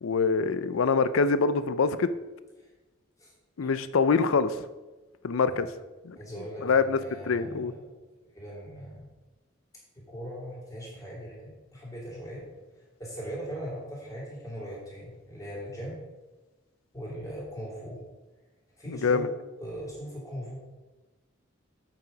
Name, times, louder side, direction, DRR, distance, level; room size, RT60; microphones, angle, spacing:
voice 1, 0.0-2.1 3.6-4.6 5.2-5.7 6.1-6.2 6.6-7.0 7.3-7.7 18.9-19.3, left 4 dB, 85° left, 13 dB, 0.5 m, -24 dB
voice 2, 6.1-7.9 8.2-9.1 9.9-12.5 12.7-16.0 16.9-18.0 18.8-19.3 19.6-20.6, equal, 15° left, -5 dB, 3.0 m, -40 dB
7.7 x 6.0 x 5.2 m, 1.1 s
head